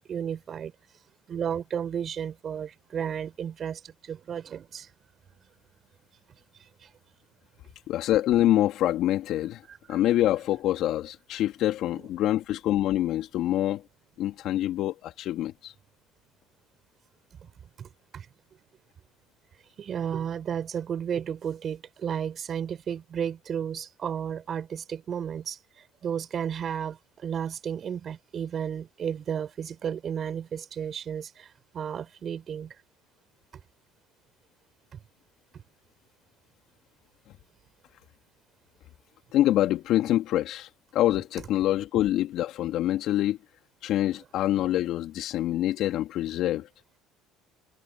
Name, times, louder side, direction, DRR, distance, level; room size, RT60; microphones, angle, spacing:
voice 1, 0.1-0.7 1.3-4.9 6.8-6.9 9.9-10.0 17.8-18.3 19.8-25.6 26.0-32.8, right 8 dB, 45° right, 6.0 m, -33 dB
voice 2, 7.9-9.6 9.9-13.8 14.2-15.7 39.3-43.4 43.8-46.7, left 13 dB, 65° left, 2.2 m, -25 dB
supercardioid pair, 85°, 0 cm